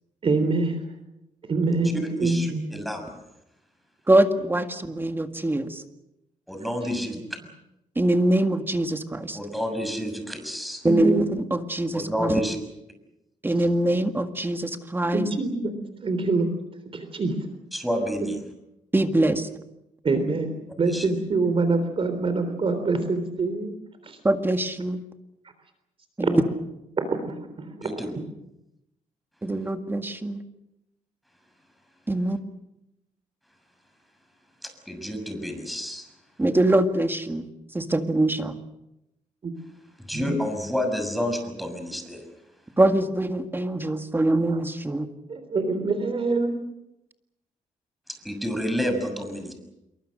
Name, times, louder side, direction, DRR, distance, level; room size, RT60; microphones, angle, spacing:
voice 1, 0.2-0.8 1.5-2.6 6.6-6.9 10.8-11.3 15.1-15.7 16.0-16.5 16.9-17.4 18.2-18.3 20.0-20.5 20.8-23.7 24.0-24.2 26.2-26.3 27.0-28.0 39.4-39.5 40.1-40.4 45.3-46.5, right 3 dB, 40° right, 8 dB, 3.6 m, -25 dB
voice 2, 2.2-3.1 6.5-7.2 9.3-10.8 11.9-12.6 17.7-18.4 20.9-21.1 27.8-28.1 34.6-36.0 40.1-42.2 48.2-49.5, equal, ahead, 7 dB, 6.5 m, -29 dB
voice 3, 4.1-5.8 8.0-9.4 10.8-11.2 11.5-12.4 13.4-15.3 18.9-19.5 24.2-25.0 26.2-26.4 29.4-30.4 32.1-32.4 36.4-37.5 37.7-38.6 42.8-45.1, right 1 dB, 15° right, 7 dB, 1.9 m, -23 dB
27.5 x 23.5 x 6.5 m, 0.88 s
cardioid pair, 105°, 14 cm